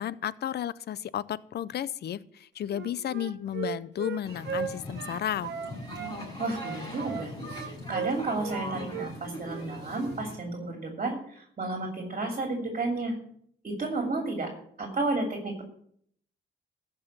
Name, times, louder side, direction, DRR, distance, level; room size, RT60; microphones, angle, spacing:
voice 1, 0.0-5.5, left 10 dB, 55° left, 19 dB, 0.6 m, -33 dB
Wind instrument woodwind instrument, 2.7-6.1 6.6-8.6 8.9-9.1 9.4-9.7 9.9-10.2, right 8 dB, 65° right, 1.3 m, -37 dB
sound 1, 4.2-10.4, left 1 dB, 20° left, 6.6 m, -40 dB
voice 2, 6.4-7.3 7.6-13.1 13.6-14.5 14.8-15.6, right 2 dB, 35° right, 3 dB, 2.8 m, -32 dB
14.0 x 5.6 x 8.1 m, 0.65 s
cardioid pair, 90°, 20 cm